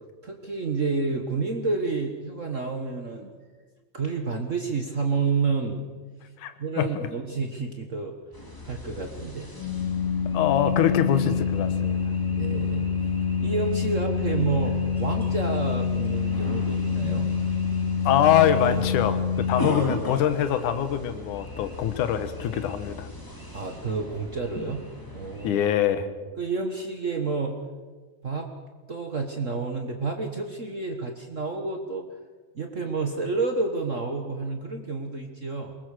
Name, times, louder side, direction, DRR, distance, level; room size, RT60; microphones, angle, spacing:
voice 1, 0.2-3.3 3.9-5.9 6.6-8.1 8.6-9.5 12.2-12.9 13.4-17.3 23.5-24.8 25.1-25.6 26.4-27.6 28.2-28.5 28.9-32.1 32.5-35.7, right 4 dB, 75° right, 4 dB, 0.7 m, -29 dB
voice 2, 6.4-6.9 10.3-12.0 18.1-23.1 25.4-26.1, left 10 dB, 70° left, 10 dB, 2.6 m, -24 dB
sound 1, 8.3-25.5, left 1 dB, 5° left, 2.4 m, -39 dB
Organ, 9.6-20.4, left 6 dB, 35° left, 2.7 m, -26 dB
22.5 x 20.0 x 6.6 m, 1.4 s
omnidirectional pair, 3.8 m